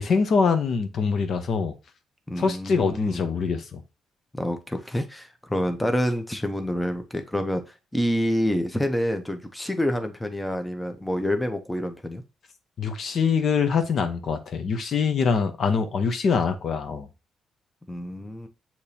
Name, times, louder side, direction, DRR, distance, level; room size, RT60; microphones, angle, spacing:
voice 1, 0.0-1.7 2.4-3.8 12.8-17.1, left 5 dB, 55° left, 0.7 m, -24 dB
voice 2, 2.3-3.3 4.3-7.6 7.9-12.2 17.9-18.5, equal, 5° left, 0.6 m, -27 dB
6.6 x 2.9 x 2.7 m
cardioid pair, 90°, 0 cm